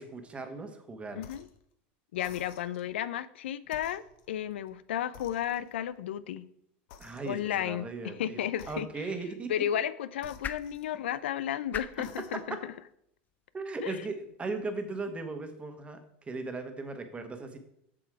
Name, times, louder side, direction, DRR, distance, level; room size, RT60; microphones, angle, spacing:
voice 1, 0.0-1.2 7.0-9.5 12.0-12.1 12.3-12.6 13.5-16.0 16.3-17.6, right 3 dB, 20° right, 7 dB, 1.3 m, -37 dB
voice 2, 1.2-1.5 2.1-6.4 7.2-9.1 9.5-12.6 13.8-14.0, left 10 dB, 90° left, 15 dB, 0.4 m, -33 dB
sound 1, 1.2-1.6 2.1-2.9 3.6-4.8 5.1-5.9 6.9-7.6 8.5-9.3 10.2-11.3 11.9-12.6, left 7 dB, 65° left, 1.0 m, -54 dB
sound 2, 8.6-14.8, left 7 dB, 30° left, 0.5 m, -47 dB
7.6 x 6.1 x 4.7 m, 0.74 s
supercardioid pair, 110°, 6 cm